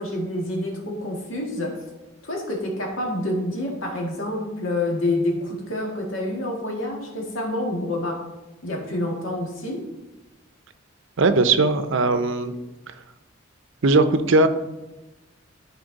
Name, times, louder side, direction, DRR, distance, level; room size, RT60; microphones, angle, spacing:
voice 1, 0.0-1.9 2.2-8.3 8.6-9.9, left 1 dB, 70° left, 0 dB, 2.0 m, -27 dB
voice 2, 11.2-12.6 13.8-14.5, right 3 dB, 65° right, 10 dB, 0.6 m, -19 dB
13.0 x 4.5 x 4.0 m, 1.0 s
head